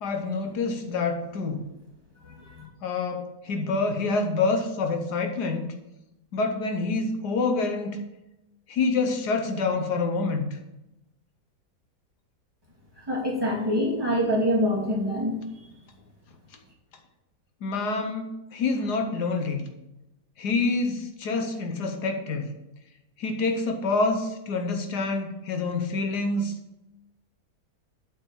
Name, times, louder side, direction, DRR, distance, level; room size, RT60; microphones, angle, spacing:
voice 1, 0.0-1.6 2.8-5.6 6.3-8.0 8.7-10.6 17.6-19.7 20.4-22.5 23.2-26.5, left 3 dB, 75° left, 5 dB, 1.5 m, -27 dB
voice 2, 2.2-2.7 13.1-15.4, equal, 15° right, -5 dB, 2.4 m, -25 dB
8.5 x 5.4 x 7.2 m, 0.93 s
omnidirectional pair, 1.8 m